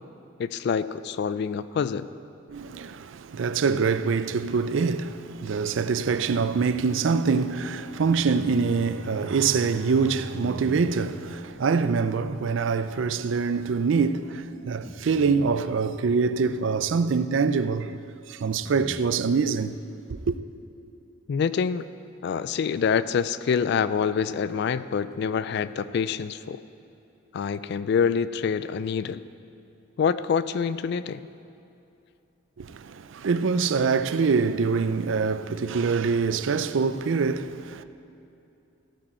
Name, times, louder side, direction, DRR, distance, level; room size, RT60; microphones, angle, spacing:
voice 1, 0.4-2.1 21.3-21.8 22.2-26.6 27.3-29.2 30.0-31.2, left 6 dB, 55° left, 0.3 m, -26 dB
voice 2, 2.5-18.0 18.3-19.8 20.1-20.4 32.6-37.8, right 5 dB, 70° right, 0.4 m, -25 dB
Bowed string instrument, 7.6-12.0, left 2 dB, 20° left, 0.7 m, -43 dB
sound 1, 10.3-11.3 12.3-12.4 13.5-13.6 14.8-15.6 18.6-19.1, right 1 dB, 10° right, 0.8 m, -44 dB
15.0 x 8.7 x 4.3 m
head